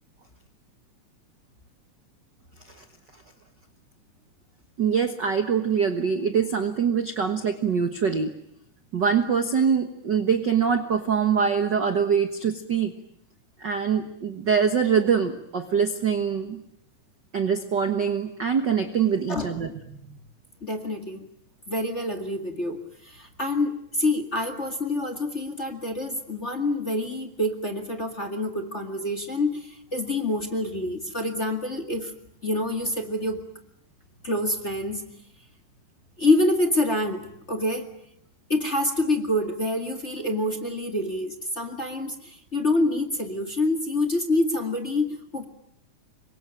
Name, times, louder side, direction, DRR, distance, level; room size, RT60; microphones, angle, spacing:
voice 1, 4.8-8.3 8.9-12.9 13.6-16.6 17.3-19.7, right 6 dB, 50° right, 8 dB, 1.4 m, -24 dB
voice 2, 20.6-21.3 21.7-32.1 32.4-33.4 34.2-35.0 36.2-37.9 38.5-45.4, left 2 dB, 25° left, 7 dB, 1.9 m, -27 dB
27.0 x 23.5 x 9.1 m, 0.71 s
omnidirectional pair, 3.8 m